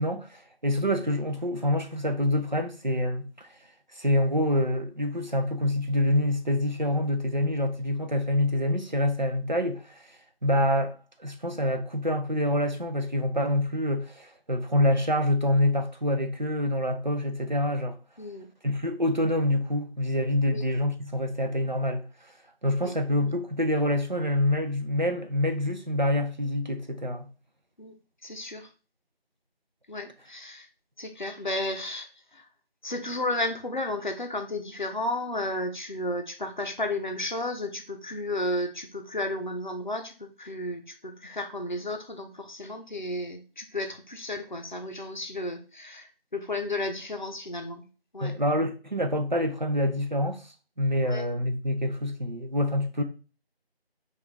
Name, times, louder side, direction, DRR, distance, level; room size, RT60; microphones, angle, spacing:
voice 1, 0.0-3.5 4.0-10.0 10.4-17.9 18.6-22.0 22.6-27.3 48.2-50.5 50.8-53.0, left 1 dB, 45° right, 0.5 m, -26 dB
voice 2, 18.2-18.5 20.5-20.6 22.8-22.9 27.8-27.9 28.2-28.7 29.9-30.7 31.0-32.5 32.8-47.8 48.1-48.3 51.0-51.2, left 1 dB, 50° left, 0.6 m, -33 dB
4.2 x 2.4 x 3.1 m
figure-of-eight pair, 170°, 31 cm